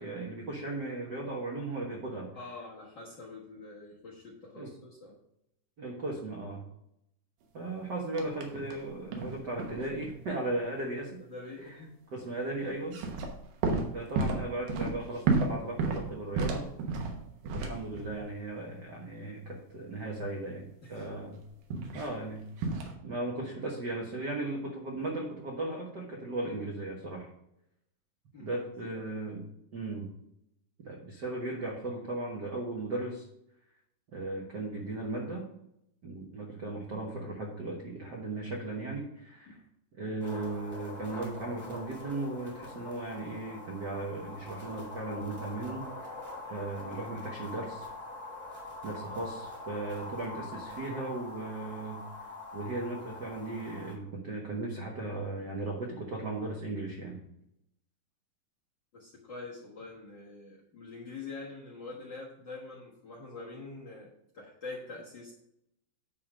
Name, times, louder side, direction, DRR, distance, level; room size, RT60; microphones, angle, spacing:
voice 1, 0.0-2.3 4.5-4.7 5.8-6.6 7.5-11.2 11.6-11.8 12.1-13.0 13.9-16.7 17.4-21.4 21.9-22.5 23.0-27.3 28.4-29.4 29.7-30.1 30.8-33.2 34.1-35.5 36.0-39.6 40.0-45.9 46.5-47.9 48.8-52.3 52.5-57.2, right 2 dB, 60° right, -1 dB, 1.1 m, -37 dB
voice 2, 2.3-5.1 11.2-11.9 20.8-21.4 21.8-22.0 28.3-29.1 39.5-39.6 58.9-64.1 64.3-65.3, left 3 dB, 50° left, -4 dB, 1.5 m, -45 dB
sound 1, 8.2-8.8 9.1-10.3 12.8-18.3 21.7-22.1 22.6-22.9, right 3 dB, 85° right, 2.7 m, -32 dB
sound 2, 40.2-54.0, left 2 dB, 5° left, 2.3 m, -44 dB
9.6 x 3.7 x 6.2 m, 0.79 s
omnidirectional pair, 3.8 m